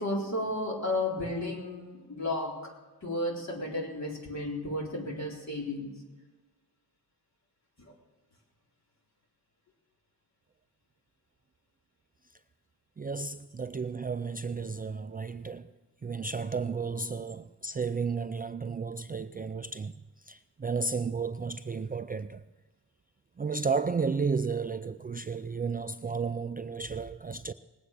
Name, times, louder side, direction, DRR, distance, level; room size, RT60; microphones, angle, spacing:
voice 1, 0.0-2.7 3.0-5.9, left 1 dB, 45° left, 3.9 m, -33 dB
voice 2, 13.0-15.7 16.0-19.9 20.3-22.4 23.4-27.5, right 5 dB, 25° right, 0.4 m, -33 dB
20.0 x 8.9 x 6.5 m
cardioid pair, 85°, 40 cm